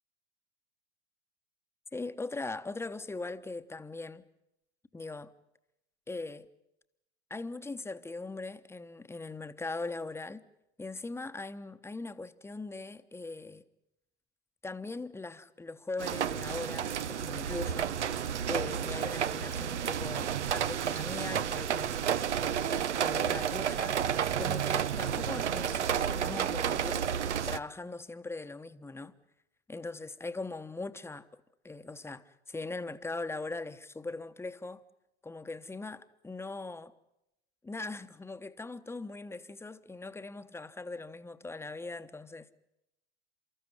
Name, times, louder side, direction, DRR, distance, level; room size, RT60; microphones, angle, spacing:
voice 1, 1.9-4.2 4.9-5.3 6.1-6.5 7.3-10.4 10.8-13.6 14.6-18.0 18.5-21.9 22.4-24.0 24.4-27.1 27.4-29.1 29.7-31.3 31.6-34.8 35.2-36.9 37.6-42.5, left 3 dB, 5° left, 1.1 m, -40 dB
sound 1, 16.0-27.6, right 8 dB, 85° right, 0.9 m, -31 dB
30.0 x 14.0 x 9.9 m
hypercardioid pair, 100°, 34 cm